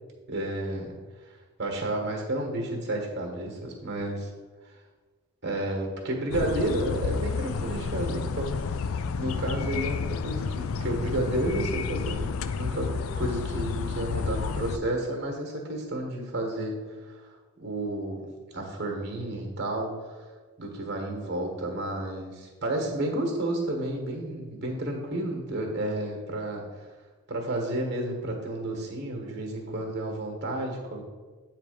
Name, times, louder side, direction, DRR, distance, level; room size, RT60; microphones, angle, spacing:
voice 1, 0.3-1.0 1.2-4.3 4.6-4.8 5.4-8.5 9.2-17.3 17.6-18.2 18.5-20.3 20.6-26.9 27.3-31.0, right 1 dB, 50° right, 1 dB, 1.3 m, -31 dB
sound 1, 6.3-14.8, left 5 dB, 70° left, 0.3 m, -30 dB
8.7 x 3.3 x 5.0 m, 1.4 s
head